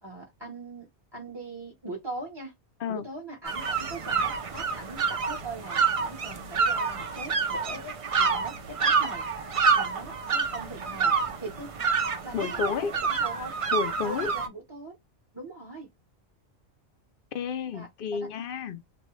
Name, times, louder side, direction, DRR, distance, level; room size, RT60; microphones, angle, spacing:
voice 1, 0.0-2.5 2.9-9.3 9.7-11.1 11.4-11.7 12.2-13.6 14.0-15.0 15.3-15.9 17.7-18.2, right 2 dB, 25° right, 0.8 m, -41 dB
sound 1, 3.4-14.5, right 5 dB, 50° right, 0.4 m, -28 dB
voice 2, 12.3-12.9 13.7-14.3 17.3-18.8, left 6 dB, 60° left, 0.7 m, -31 dB
3.0 x 2.2 x 3.0 m
omnidirectional pair, 1.2 m